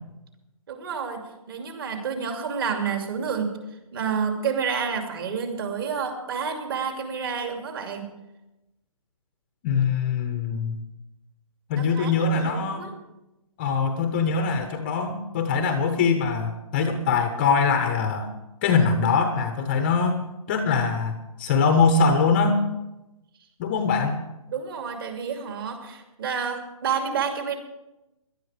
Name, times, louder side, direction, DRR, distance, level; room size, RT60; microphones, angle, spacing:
voice 1, 0.7-1.2 1.5-3.6 3.9-8.0 11.7-12.9 24.5-27.6, right 6 dB, 40° right, 4 dB, 2.7 m, -29 dB
voice 2, 9.6-10.8 11.7-12.9 13.6-18.3 18.6-20.2 20.5-22.7 23.6-24.2, left 5 dB, 20° left, 7 dB, 0.8 m, -23 dB
17.5 x 12.0 x 5.0 m, 0.96 s
hypercardioid pair, 170°, 18 cm